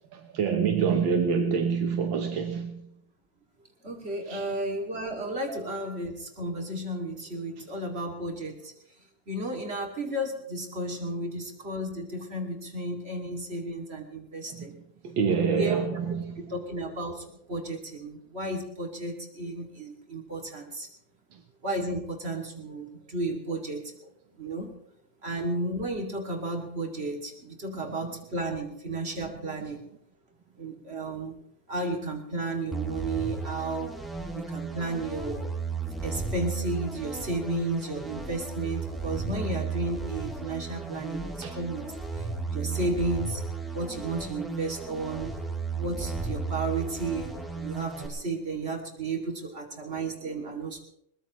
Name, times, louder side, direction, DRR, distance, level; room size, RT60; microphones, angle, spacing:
voice 1, 0.1-2.9 4.3-4.6 5.5-5.6 7.6-7.7 14.6-14.7 15.0-16.5 27.8-28.1 41.4-41.6 49.8-50.0, right 6 dB, 80° right, 1.8 m, -27 dB
voice 2, 3.8-8.6 9.3-14.7 15.6-16.0 16.5-20.9 21.6-23.9 24.4-24.7 25.2-29.8 30.6-31.4 31.7-33.9 34.3-35.5 36.0-41.9 42.5-43.4 43.7-45.3 45.8-50.8, right 2 dB, 30° right, 2.7 m, -33 dB
sound 1, 32.7-48.1, right 4 dB, ahead, 3.2 m, -34 dB
21.5 x 20.0 x 3.1 m
omnidirectional pair, 2.1 m